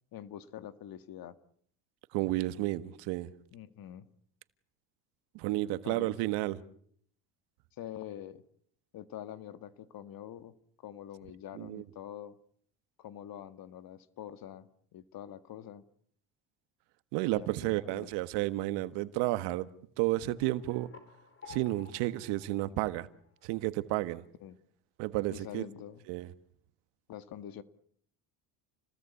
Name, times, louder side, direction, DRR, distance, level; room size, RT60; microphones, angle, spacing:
voice 1, 0.1-1.4 3.5-4.1 5.8-6.2 7.8-8.4 8.9-12.4 13.0-15.8 17.3-18.1 24.4-24.6 25.3-26.0 27.1-27.6, left 11 dB, 55° left, 2.0 m, -45 dB
voice 2, 2.1-3.3 5.3-6.6 11.6-11.8 17.1-19.7 20.0-20.9 21.5-23.1 23.4-24.2 25.0-25.6 26.1-26.3, right 18 dB, 75° right, 1.6 m, -31 dB
sound 1, 20.4-23.7, left 6 dB, 30° left, 4.6 m, -54 dB
29.5 x 19.5 x 8.4 m
supercardioid pair, 95°, 42 cm